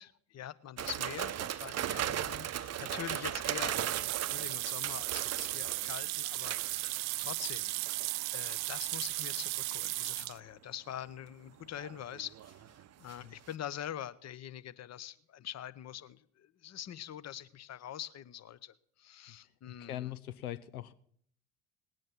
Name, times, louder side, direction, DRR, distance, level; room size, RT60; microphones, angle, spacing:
voice 1, 0.0-12.6 13.0-20.1, left 11 dB, 40° left, 16 dB, 0.9 m, -44 dB
sound 1, 0.8-7.5 7.9-8.2 8.9-9.4 11.6-13.2 13.5-13.6, right 11 dB, 35° right, 0.7 m, -38 dB
sound 2, 3.7-10.4, right 21 dB, 75° right, 0.5 m, -36 dB
voice 2, 19.7-20.9, left 13 dB, 85° left, 15 dB, 0.7 m, -42 dB
18.5 x 9.1 x 5.9 m, 0.65 s
hypercardioid pair, 55°, 42 cm